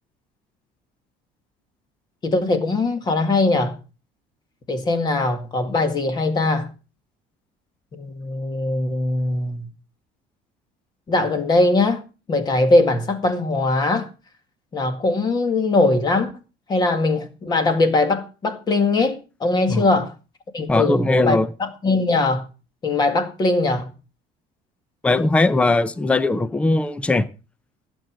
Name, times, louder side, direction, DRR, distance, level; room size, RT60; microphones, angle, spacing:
voice 1, 2.2-3.8 4.7-6.7 7.9-9.7 11.1-12.0 12.3-14.1 14.7-16.3 16.7-20.1 20.5-22.5 22.8-23.9, left 2 dB, 25° left, 2.0 m, -21 dB
voice 2, 20.7-21.5 25.0-27.3, left 2 dB, 5° left, 0.6 m, -19 dB
16.0 x 7.8 x 6.3 m
cardioid pair, 175°, 17 cm